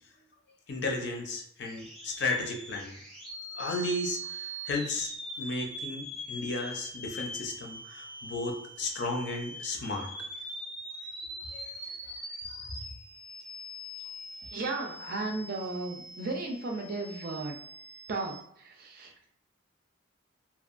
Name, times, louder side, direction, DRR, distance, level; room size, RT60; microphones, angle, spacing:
voice 1, 0.7-3.0 3.5-5.1 5.4-10.3 11.5-11.7 12.1-12.2, left 2 dB, 55° left, 1 dB, 0.5 m, -34 dB
sound 1, 1.6-18.4, equal, 5° left, 0.6 m, -42 dB
voice 2, 14.5-17.5 18.1-19.1, right 3 dB, 50° right, 3 dB, 0.4 m, -35 dB
2.7 x 2.2 x 2.4 m, 0.66 s
head